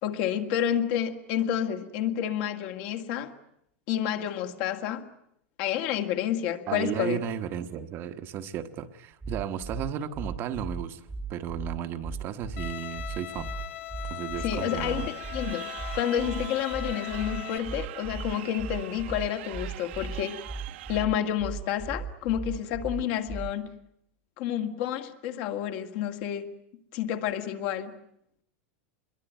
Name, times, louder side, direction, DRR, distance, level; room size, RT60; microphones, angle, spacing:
voice 1, 0.0-3.3 3.9-5.1 5.6-7.2 14.4-15.7 15.9-20.4 20.9-23.7 24.4-26.5 26.9-27.9, left 10 dB, 50° left, 2.1 m, -29 dB
voice 2, 6.7-11.0 11.3-13.5 14.1-15.1, right 9 dB, 35° right, 1.2 m, -34 dB
sound 1, 9.2-23.7, right 4 dB, 10° right, 1.4 m, -37 dB
Bowed string instrument, 12.6-17.6, left 14 dB, 75° left, 1.1 m, -39 dB
Crowd, 14.6-21.0, right 15 dB, 65° right, 1.4 m, -43 dB
26.5 x 22.5 x 9.2 m
supercardioid pair, 155°, 7 cm